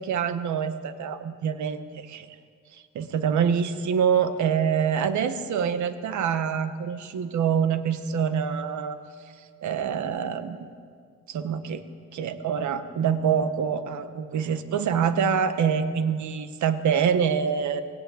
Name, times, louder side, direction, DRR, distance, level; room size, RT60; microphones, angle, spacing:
voice 1, 0.0-2.3 2.7-9.0 9.6-10.6 11.3-11.8 12.1-17.8, right 7 dB, 70° right, 9 dB, 1.4 m, -25 dB
23.5 x 19.5 x 9.4 m, 2.1 s
cardioid pair, 90°, 30 cm